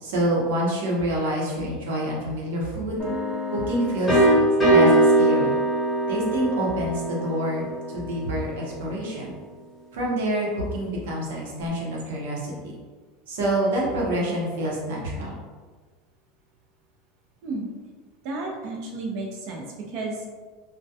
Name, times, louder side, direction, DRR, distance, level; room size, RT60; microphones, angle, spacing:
voice 1, 0.0-3.0 3.5-4.2 4.7-5.6 6.1-7.7 7.9-9.3 9.9-12.7 13.3-15.3, right 1 dB, 90° right, -3 dB, 0.7 m, -27 dB
sound 1, 3.0-8.7, right 1 dB, 5° left, 0.9 m, -22 dB
voice 2, 18.2-20.3, right 3 dB, 60° right, 0 dB, 0.5 m, -32 dB
2.2 x 2.1 x 2.7 m, 1.4 s
supercardioid pair, 150°, 0 cm